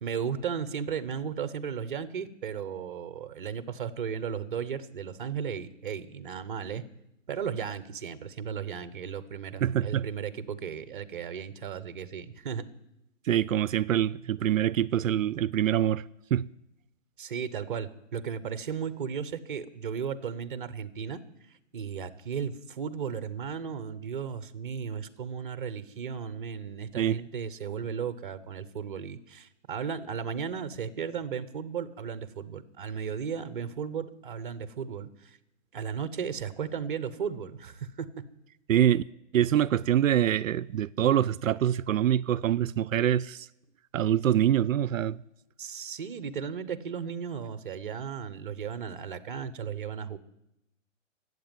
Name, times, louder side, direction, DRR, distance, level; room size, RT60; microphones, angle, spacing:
voice 1, 0.0-6.8 7.3-12.7 17.2-21.2 21.7-35.4 35.7-38.1 45.6-50.2, right 7 dB, 40° right, 0.9 m, -35 dB
voice 2, 9.6-10.1 13.3-16.0 16.3-16.5 27.0-27.2 38.7-39.0 39.3-43.5 43.9-45.2, right 11 dB, 85° right, 0.5 m, -25 dB
14.5 x 8.1 x 9.1 m
hypercardioid pair, 165°, 39 cm